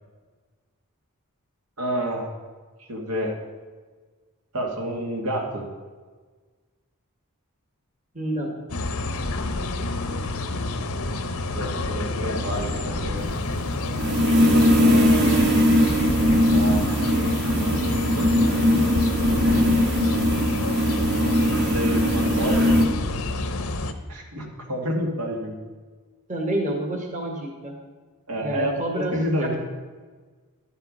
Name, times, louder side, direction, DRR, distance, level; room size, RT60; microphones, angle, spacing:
voice 1, 1.8-2.3 2.9-3.4 4.5-5.7 11.5-13.4 14.8-15.5 16.2-16.8 18.1-18.6 18.9-19.9 21.4-22.7 24.1-25.6 28.3-29.6, equal, 80° right, 1 dB, 2.1 m, -29 dB
voice 2, 8.1-8.6 26.3-27.7 28.4-29.6, right 1 dB, 35° right, 2 dB, 1.4 m, -28 dB
sound 1, 8.7-23.9, left 2 dB, 75° left, 0.9 m, -28 dB
sound 2, 13.2-22.9, equal, 50° right, 1.6 m, -20 dB
11.5 x 8.2 x 5.4 m, 1.4 s
head